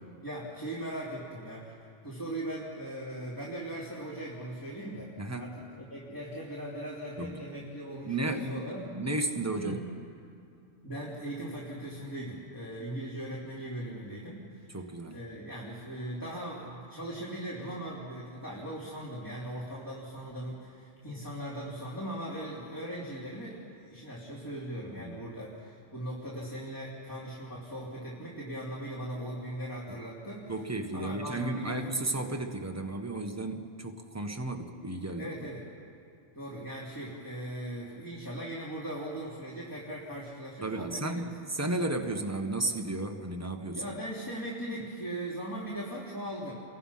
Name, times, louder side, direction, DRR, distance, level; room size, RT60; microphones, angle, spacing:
voice 1, 0.2-1.7 2.0-8.8 9.6-9.8 10.8-14.7 15.1-30.5 30.9-31.8 35.2-35.6 36.3-41.3 43.7-46.5, right 1 dB, 15° left, -7 dB, 3.5 m, -39 dB
voice 2, 5.2-5.5 7.2-7.4 8.0-9.8 14.7-15.2 25.0-25.3 29.9-30.0 30.5-35.3 40.6-43.8, right 2 dB, 15° right, 4 dB, 1.3 m, -33 dB
30.0 x 23.0 x 5.8 m, 2.5 s
omnidirectional pair, 1.2 m